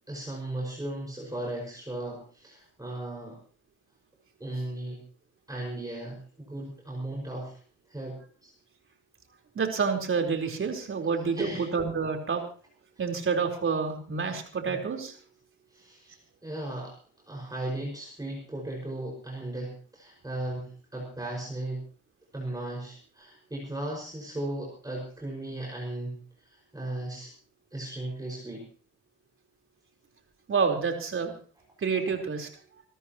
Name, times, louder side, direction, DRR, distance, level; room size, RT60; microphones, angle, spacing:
voice 1, 0.1-3.4 4.4-5.0 5.5-7.5 7.9-8.5 11.3-11.7 14.7-14.8 15.7-16.9 17.3-21.8 22.3-27.3 27.7-28.7, right 1 dB, 10° right, -3 dB, 5.6 m, -36 dB
voice 2, 9.6-12.4 13.0-15.1 30.5-31.4 31.8-32.5, right 5 dB, 45° right, 3 dB, 4.2 m, -28 dB
26.5 x 13.5 x 3.0 m, 0.41 s
cardioid pair, 90°, 30 cm